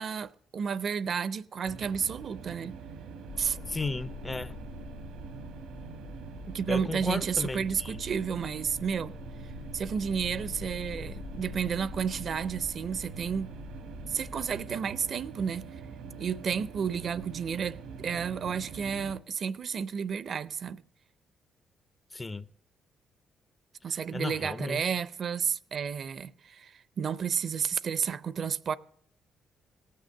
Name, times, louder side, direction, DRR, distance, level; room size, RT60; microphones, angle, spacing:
voice 1, 0.0-2.8 3.4-3.6 6.5-9.2 9.7-13.5 14.1-15.6 16.2-20.8 23.8-28.7, right 7 dB, 55° right, 0.4 m, -31 dB
sound 1, 1.6-19.2, right 5 dB, 85° right, 1.0 m, -44 dB
sound 2, 3.3-14.6, left 5 dB, 70° left, 1.1 m, -45 dB
voice 2, 3.7-4.6 6.7-8.0 22.1-22.5 23.9-24.9, left 3 dB, 20° left, 0.4 m, -35 dB
17.5 x 6.6 x 6.3 m
cardioid pair, 90°, 0 cm